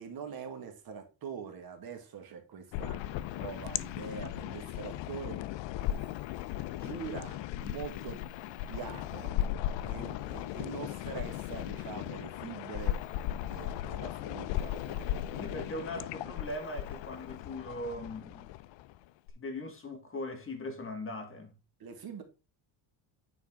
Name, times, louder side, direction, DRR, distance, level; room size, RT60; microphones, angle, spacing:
voice 1, 0.0-3.0 3.4-5.4 5.9-6.1 6.7-8.2 8.7-9.3 9.8-13.0 13.4-15.9 21.8-22.2, right 6 dB, 45° right, 1.9 m, -44 dB
sound 1, 2.7-19.3, left 13 dB, 65° left, 0.6 m, -37 dB
voice 2, 15.4-18.5 19.4-21.5, left 1 dB, 25° left, 1.7 m, -40 dB
9.4 x 4.5 x 3.6 m
cardioid pair, 135°, 49 cm